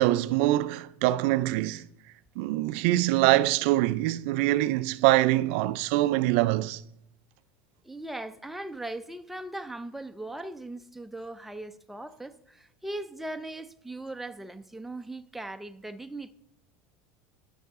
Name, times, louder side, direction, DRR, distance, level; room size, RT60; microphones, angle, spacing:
voice 1, 0.0-1.9 2.4-6.8, right 16 dB, 70° right, 0.3 m, -24 dB
voice 2, 7.8-16.3, right 2 dB, 5° right, 0.4 m, -39 dB
12.0 x 6.2 x 3.6 m
supercardioid pair, 125°, 7 cm